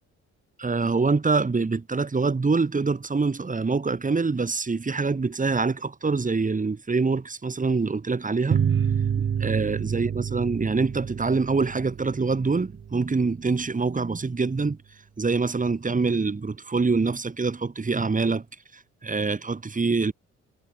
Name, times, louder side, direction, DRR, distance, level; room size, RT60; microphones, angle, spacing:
voice 1, 0.6-8.6 9.4-14.8 15.2-18.4 18.7-20.1, right 4 dB, 25° right, 4.6 m, -25 dB
sound 1, 8.5-13.6, right 8 dB, 40° right, 1.3 m, -28 dB
cardioid pair, 90°, 30 cm